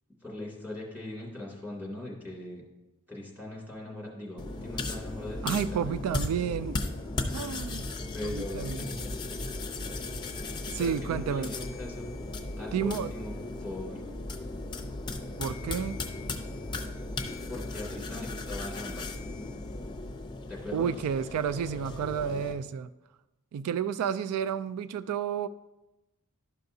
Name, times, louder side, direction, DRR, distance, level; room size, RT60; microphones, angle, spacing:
voice 1, 0.2-2.6 3.1-6.0 8.1-9.1 10.8-12.2 12.6-13.3 13.6-14.0 17.5-19.2 20.5-20.9, left 2 dB, 10° right, -4 dB, 2.2 m, -40 dB
sound 1, 4.4-22.5, left 2 dB, 20° left, 0.6 m, -36 dB
voice 2, 5.4-6.8 7.3-7.9 8.2-8.8 10.7-11.5 12.7-13.1 15.4-16.0 20.7-22.9 23.5-25.5, right 7 dB, 85° right, 14 dB, 0.3 m, -31 dB
12.0 x 5.7 x 2.7 m, 1.0 s
head